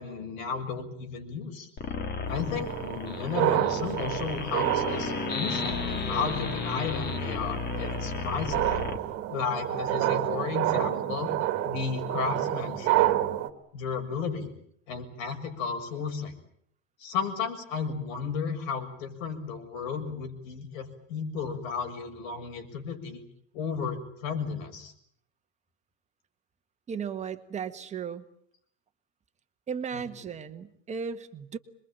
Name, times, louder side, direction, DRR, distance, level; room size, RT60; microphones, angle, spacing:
voice 1, 0.0-1.7 2.3-8.8 9.3-11.3 11.7-13.1 13.7-14.5 14.9-16.3 17.0-23.2 23.5-24.9 29.9-30.0, left 6 dB, 80° left, 6 dB, 6.8 m, -33 dB
sound 1, 1.8-9.0, left 5 dB, 25° left, 2.0 m, -33 dB
sound 2, 2.3-13.5, right 14 dB, 35° right, 2.1 m, -30 dB
voice 2, 26.9-28.2 29.7-31.6, right 6 dB, 15° right, 8 dB, 1.6 m, -35 dB
26.5 x 22.5 x 9.0 m, 0.67 s
supercardioid pair, 165°, 39 cm